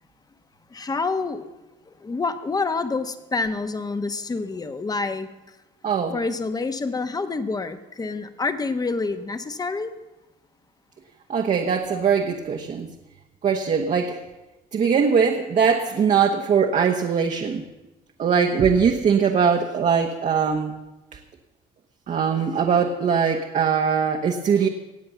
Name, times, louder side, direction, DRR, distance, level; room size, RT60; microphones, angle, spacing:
voice 1, 0.7-1.5 2.0-5.3 6.1-9.9, left 3 dB, 20° left, 10 dB, 1.1 m, -27 dB
voice 2, 5.8-6.2 11.3-12.9 13.4-14.2 14.7-17.6 18.2-20.7 22.1-24.7, right 6 dB, 45° right, 3 dB, 1.2 m, -21 dB
18.0 x 7.7 x 6.9 m, 1.0 s
cardioid pair, 110°, 17 cm